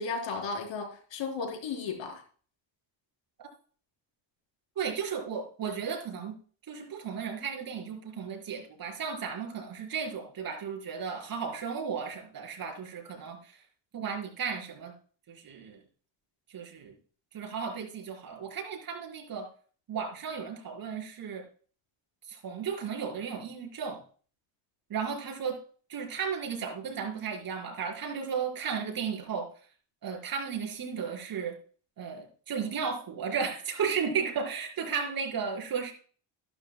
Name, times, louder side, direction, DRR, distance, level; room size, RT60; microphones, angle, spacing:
voice 1, 0.0-2.2, left 4 dB, 75° left, 3 dB, 4.2 m, -34 dB
voice 2, 4.7-6.3 6.7-13.6 13.9-14.9 15.3-15.8 16.5-16.9 17.3-19.5 19.9-21.4 22.3-24.0 24.9-25.6 25.9-29.5 30.0-31.5 32.0-35.9, right 6 dB, 50° right, 1 dB, 5.0 m, -34 dB
13.5 x 12.0 x 2.3 m, 0.42 s
cardioid pair, 140°, 46 cm